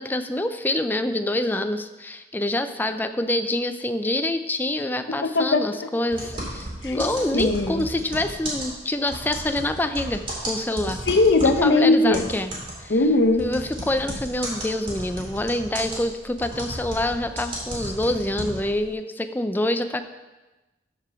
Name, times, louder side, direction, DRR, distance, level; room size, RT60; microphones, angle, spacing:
voice 1, 0.0-11.0 11.4-12.5 12.8-13.0 13.4-20.0, left 1 dB, 10° left, 9 dB, 0.4 m, -26 dB
voice 2, 5.1-5.7 6.8-7.1 7.3-7.9 11.1-12.3 12.9-13.5, left 2 dB, 75° left, 7 dB, 0.8 m, -19 dB
sound 1, 6.1-11.7 12.1-18.8, right 1 dB, 30° right, 2.6 m, -33 dB
12.5 x 4.9 x 4.7 m, 1.1 s
head